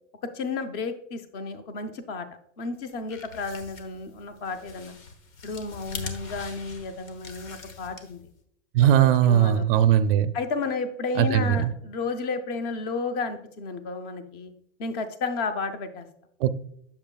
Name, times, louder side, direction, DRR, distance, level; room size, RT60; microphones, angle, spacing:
voice 1, 0.2-2.3 2.6-4.9 5.4-8.2 9.0-9.7 10.3-14.5 14.8-16.1, left 4 dB, 25° left, 0.6 m, -32 dB
sound 1, 2.8-8.4, left 5 dB, 90° left, 1.3 m, -42 dB
voice 2, 8.7-10.3 11.2-11.7 16.4-16.5, right 10 dB, 45° right, 0.4 m, -19 dB
7.7 x 7.0 x 2.2 m
supercardioid pair, 150°, 40 cm